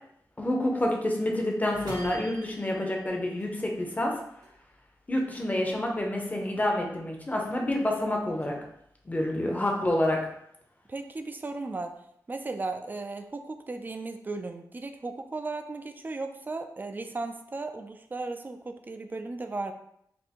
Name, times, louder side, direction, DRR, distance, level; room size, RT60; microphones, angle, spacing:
voice 1, 0.4-4.2 5.1-8.6 9.1-10.3, left 1 dB, 20° left, 0 dB, 0.7 m, -28 dB
sound 1, 1.7-4.2 4.4-6.1 6.4-7.8 8.2-9.3, right 2 dB, 70° right, 1.2 m, -47 dB
voice 2, 9.3-9.7 10.9-12.0 12.3-19.7, right 3 dB, 25° right, 7 dB, 0.3 m, -36 dB
4.2 x 2.6 x 2.9 m, 0.74 s
wide cardioid pair, 105°, 7 cm